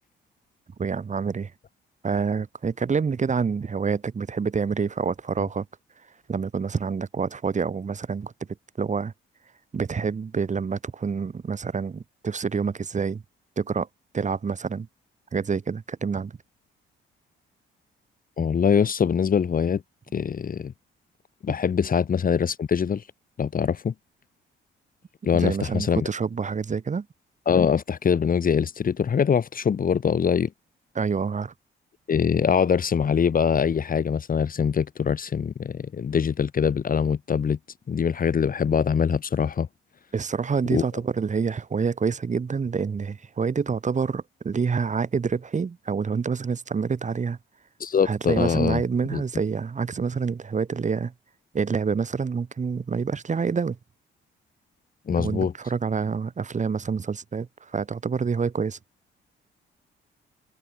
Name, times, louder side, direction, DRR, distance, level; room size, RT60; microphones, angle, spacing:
voice 1, 0.8-1.5 2.0-5.7 6.3-8.3 8.8-9.1 9.7-13.2 13.6-13.9 14.1-14.9 15.3-16.3 25.3-27.1 30.9-31.5 40.1-47.4 48.0-51.1 51.5-53.8 55.2-58.8, right 5 dB, 35° right, 5.0 m, -27 dB
voice 2, 18.4-19.8 20.1-20.7 21.4-23.0 23.4-23.9 25.2-26.1 27.5-30.5 32.1-37.6 37.9-39.7 40.7-40.8 47.8-48.8 49.1-49.2 55.1-55.5, left 7 dB, 45° left, 2.3 m, -23 dB
cardioid pair, 90°, 20 cm